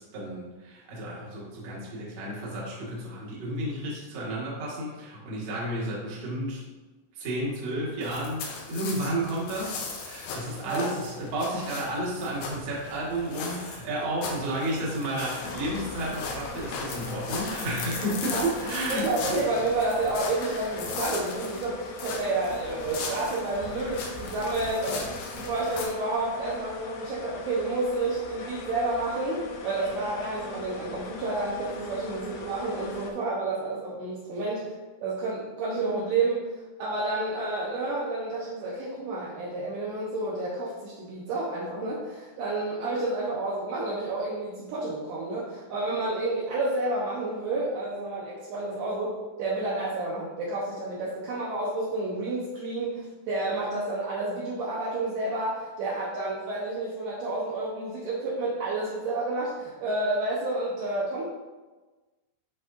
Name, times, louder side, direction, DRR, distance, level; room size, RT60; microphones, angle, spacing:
voice 1, 0.0-6.6 7.2-19.4, right 1 dB, 50° right, -6 dB, 2.1 m, -32 dB
sound 1, 8.0-25.9, left 4 dB, 90° left, 1.9 m, -38 dB
sound 2, 15.4-33.1, left 3 dB, 75° left, 2.4 m, -40 dB
voice 2, 18.9-34.7 35.0-36.5 36.8-61.2, right 2 dB, 75° right, -6 dB, 2.6 m, -30 dB
11.0 x 4.1 x 2.7 m, 1.2 s
omnidirectional pair, 5.2 m